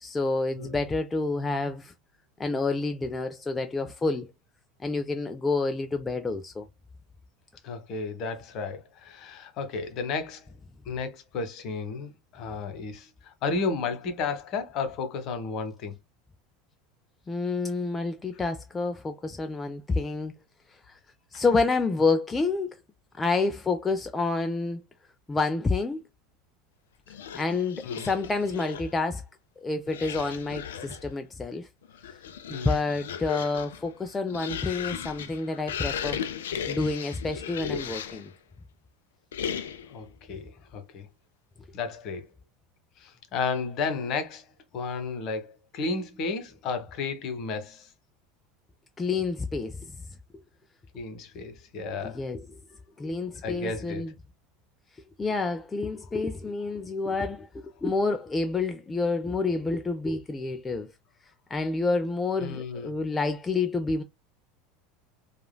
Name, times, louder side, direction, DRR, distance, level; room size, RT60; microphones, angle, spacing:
voice 1, 0.0-1.9 2.4-4.3 4.8-6.7 17.3-20.3 20.9-21.0 21.3-22.7 23.2-24.8 25.3-26.0 27.3-29.2 29.6-31.7 32.5-36.2 36.7-38.3 49.0-49.9 52.0-52.6 53.0-54.1 55.2-60.9 61.5-64.0, left 3 dB, 15° left, 0.4 m, -28 dB
voice 2, 7.6-10.5 10.9-13.1 13.4-15.9 21.3-21.4 27.8-28.1 32.5-32.7 39.9-41.1 41.7-42.3 43.0-44.4 44.7-47.9 50.9-52.2 53.4-54.1 62.4-62.9, left 4 dB, 45° left, 1.0 m, -33 dB
sound 1, 27.1-29.0 29.9-31.1 31.8-38.3 39.3-40.0, left 8 dB, 70° left, 0.5 m, -36 dB
4.8 x 2.4 x 2.2 m
figure-of-eight pair, 75°, 0 cm